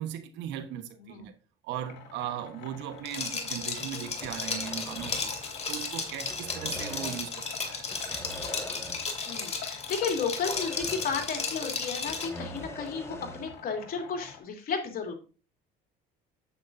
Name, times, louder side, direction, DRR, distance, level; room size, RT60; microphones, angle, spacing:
voice 1, 0.0-1.3 1.6-7.9, right 10 dB, 75° right, 1.2 m, -38 dB
sound 1, 1.7-14.4, left 8 dB, 70° left, 2.4 m, -48 dB
Liquid, 3.1-12.4, left 4 dB, 35° left, 2.5 m, -34 dB
sound 2, 4.2-5.9 6.1-7.4 7.9-9.3 9.5-9.6 10.2-11.5 11.8-13.6, left 1 dB, 15° left, 1.6 m, -44 dB
voice 2, 9.3-15.2, left 5 dB, 50° left, 2.9 m, -33 dB
9.3 x 8.3 x 2.6 m
supercardioid pair, 85°, 19 cm